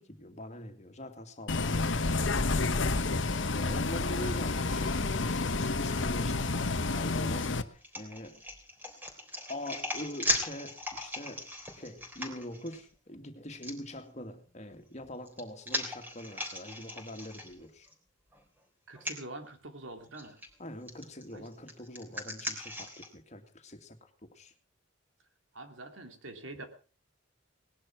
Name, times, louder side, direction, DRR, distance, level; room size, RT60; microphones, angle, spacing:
voice 1, 0.0-2.3 3.5-8.4 9.5-17.9 20.6-24.5, left 1 dB, 35° left, 2.2 m, -44 dB
Bus, 1.5-7.6, left 3 dB, 70° left, 1.0 m, -29 dB
sound 1, 7.3-12.8 13.6-13.7 14.9-17.9 18.3-18.4 18.9-19.2 20.1-20.5 20.9-23.1, left 1 dB, 10° right, 3.5 m, -38 dB
voice 2, 18.9-20.4 21.3-21.4 25.5-26.7, right 2 dB, 80° right, 3.0 m, -45 dB
19.0 x 11.0 x 6.1 m
head